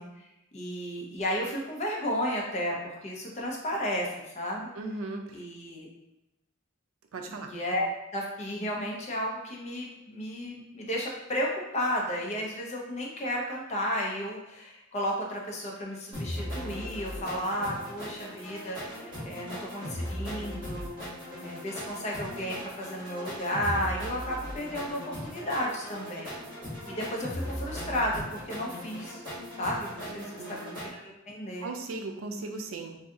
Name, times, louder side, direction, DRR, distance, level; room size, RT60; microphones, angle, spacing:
voice 1, 0.0-4.7 5.3-5.9 7.4-7.9 8.1-20.9 21.4-26.4 26.9-29.2 29.6-30.6 30.8-31.7, equal, 35° left, -2 dB, 0.6 m, -33 dB
voice 2, 4.7-5.2 7.1-7.5 30.1-30.8 31.6-33.0, right 3 dB, 85° right, 4 dB, 0.4 m, -37 dB
sound 1, 16.1-30.9, equal, 20° right, 1.5 m, -38 dB
2.6 x 2.3 x 3.6 m, 0.95 s
head